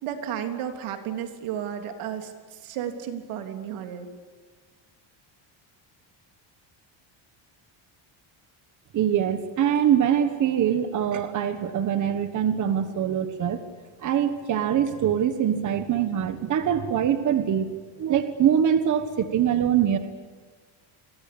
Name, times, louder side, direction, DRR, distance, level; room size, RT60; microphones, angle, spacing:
voice 1, 0.0-4.1, right 9 dB, 85° right, 5 dB, 3.5 m, -33 dB
voice 2, 8.9-13.6 14.0-17.7 18.0-20.0, right 9 dB, 40° right, 9 dB, 1.4 m, -23 dB
28.5 x 23.0 x 8.6 m, 1.4 s
cardioid pair, 175°, 48 cm